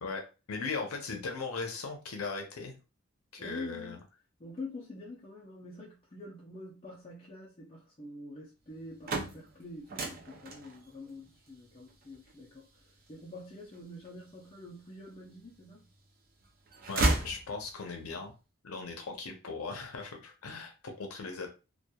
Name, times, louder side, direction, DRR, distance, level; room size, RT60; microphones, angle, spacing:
voice 1, 0.0-2.8 3.3-4.0 16.9-18.3 18.6-21.5, left 4 dB, 90° left, 0.6 m, -38 dB
voice 2, 3.4-4.0 4.4-15.9, left 2 dB, 25° left, 0.4 m, -46 dB
sound 1, 8.7-14.7 15.3-16.1 16.4-18.0, right 2 dB, 40° right, 0.4 m, -35 dB
2.8 x 2.2 x 2.2 m
head